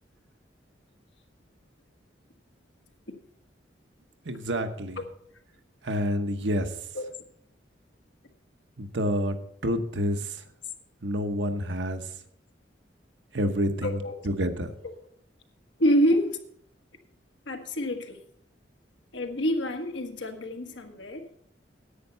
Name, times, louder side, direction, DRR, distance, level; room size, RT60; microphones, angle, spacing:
voice 1, 4.3-5.0 5.8-6.7 8.8-9.4 9.6-10.3 11.0-12.0 13.3-14.0 14.2-14.7, equal, 75° right, 7 dB, 1.1 m, -28 dB
voice 2, 13.8-14.2 14.8-14.9 15.8-16.4 17.5-18.2 19.1-21.3, equal, 80° left, 4 dB, 1.5 m, -27 dB
10.0 x 9.0 x 5.5 m, 0.67 s
head